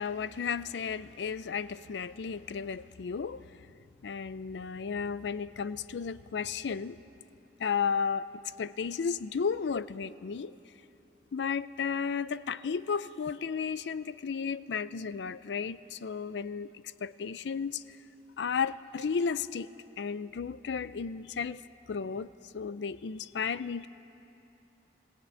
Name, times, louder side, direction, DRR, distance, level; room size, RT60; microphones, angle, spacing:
voice 1, 0.0-3.7 4.0-7.0 7.6-8.3 8.6-10.6 11.3-17.8 18.4-21.6 21.9-23.9, left 6 dB, 75° left, 16 dB, 0.4 m, -34 dB
19.5 x 15.5 x 9.5 m, 2.9 s
head